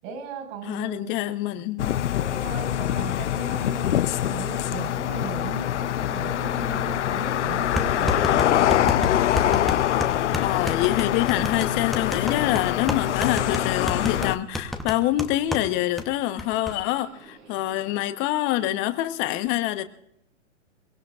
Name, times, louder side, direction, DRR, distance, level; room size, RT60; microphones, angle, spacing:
voice 1, 0.0-1.1 2.2-8.8, right 5 dB, 40° right, 5.0 m, -37 dB
voice 2, 0.6-2.0 10.4-19.8, left 14 dB, 30° left, 1.1 m, -26 dB
sound 1, 1.8-14.4, left 11 dB, 70° left, 0.6 m, -24 dB
sound 2, 7.7-15.7 16.0-16.1 16.4-16.7, left 1 dB, ahead, 1.0 m, -30 dB
Subway metro underground, 9.0-18.1, right 4 dB, 90° right, 7.0 m, -54 dB
23.0 x 22.0 x 2.5 m
hypercardioid pair, 125°, 37 cm